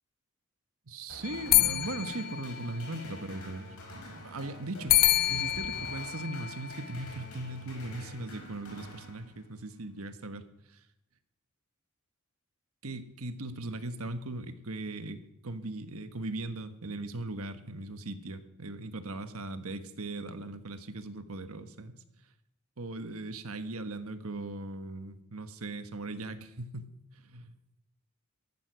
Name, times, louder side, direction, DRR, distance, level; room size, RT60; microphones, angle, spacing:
voice 1, 0.9-10.5 12.8-22.0 22.8-27.6, right 2 dB, 80° right, 9 dB, 1.4 m, -39 dB
sound 1, 1.1-9.7, left 1 dB, 80° left, 4.7 m, -47 dB
sound 2, 1.2-3.2 4.9-7.3, left 14 dB, 45° left, 0.5 m, -28 dB
14.0 x 12.0 x 6.3 m, 0.83 s
head